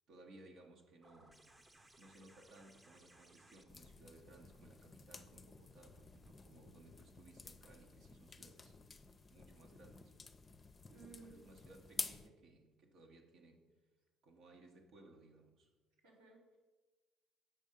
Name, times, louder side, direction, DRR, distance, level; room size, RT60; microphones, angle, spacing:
voice 1, 0.1-1.4 2.0-8.8 9.3-10.1 11.1-13.7 14.2-15.7, right 2 dB, 65° right, 1.2 m, -61 dB
sound 1, 1.0-6.3 7.7-7.8, right 1 dB, 20° right, 1.0 m, -66 dB
sound 2, 3.7-12.3, left 4 dB, 30° left, 0.6 m, -51 dB
voice 2, 10.9-11.4 16.0-16.6, right 4 dB, 90° right, 2.4 m, -58 dB
7.2 x 5.3 x 5.2 m
hypercardioid pair, 60°, 0 cm